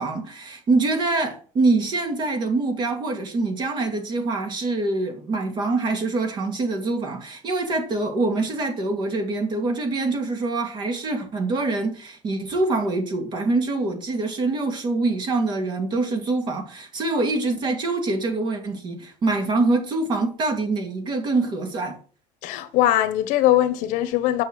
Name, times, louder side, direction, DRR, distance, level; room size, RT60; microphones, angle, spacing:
voice 1, 0.0-22.0, right 3 dB, 35° right, 2.4 m, -25 dB
voice 2, 22.4-24.4, left 13 dB, 75° left, 1.2 m, -21 dB
9.2 x 6.0 x 6.1 m
cardioid pair, 180°, 13 cm